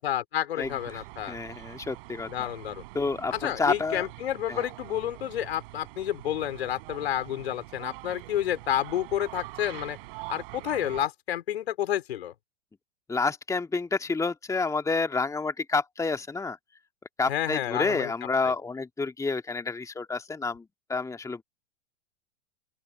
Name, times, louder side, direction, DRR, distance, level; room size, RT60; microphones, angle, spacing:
voice 1, 0.0-1.4 2.3-2.8 3.3-10.0 10.3-12.3 17.3-18.1 18.4-18.5, left 11 dB, 65° left, 4.5 m, -30 dB
voice 2, 0.6-1.0 1.3-2.5 2.9-4.1 4.5-4.6 13.1-16.6 17.2-20.6 20.9-21.4, left 4 dB, 10° left, 2.0 m, -29 dB
sound 1, 0.6-11.1, right 22 dB, 55° right, 6.4 m, -44 dB
open air
figure-of-eight pair, 100°, 33 cm